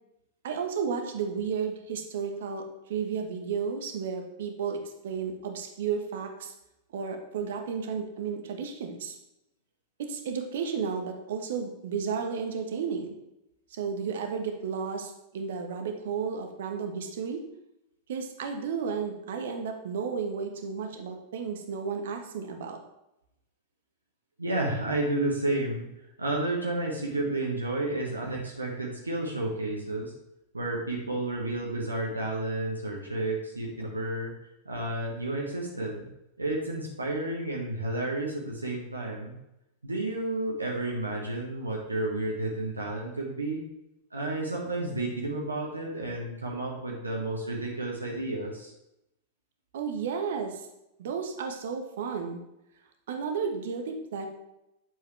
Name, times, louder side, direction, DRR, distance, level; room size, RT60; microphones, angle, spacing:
voice 1, 0.4-6.5 6.9-9.1 10.1-13.1 13.7-17.4 18.1-22.8 49.7-50.7 51.0-52.4 53.1-54.3, right 6 dB, 60° right, 4 dB, 1.2 m, -33 dB
voice 2, 24.4-25.9 26.2-30.1 30.5-34.3 34.6-36.1 36.4-39.3 39.8-43.6 44.1-48.7, right 2 dB, 80° right, -1 dB, 1.4 m, -31 dB
9.3 x 7.2 x 3.3 m, 0.87 s
figure-of-eight pair, 90°, 0 cm